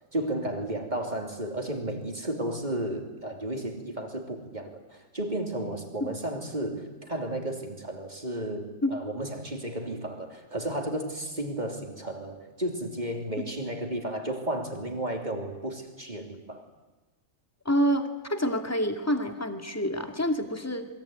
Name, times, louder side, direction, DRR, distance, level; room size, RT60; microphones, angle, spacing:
voice 1, 0.1-16.6, right 1 dB, 30° right, 4 dB, 3.5 m, -33 dB
voice 2, 17.7-20.9, equal, 10° left, 6 dB, 2.3 m, -27 dB
27.5 x 22.5 x 9.4 m, 1.2 s
omnidirectional pair, 1.4 m